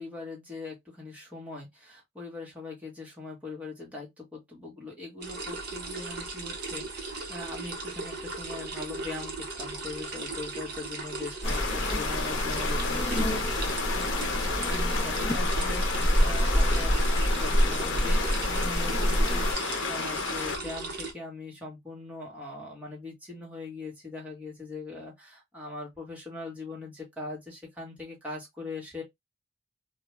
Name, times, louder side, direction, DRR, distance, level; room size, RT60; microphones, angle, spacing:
voice 1, 0.0-29.0, left 2 dB, 10° right, 1.1 m, -41 dB
sound 1, 5.2-21.1, right 3 dB, 60° right, 0.9 m, -37 dB
Stream, 11.4-20.6, left 5 dB, 85° left, 0.5 m, -33 dB
sound 2, 11.4-19.5, equal, 20° left, 0.5 m, -27 dB
2.3 x 2.2 x 3.0 m
head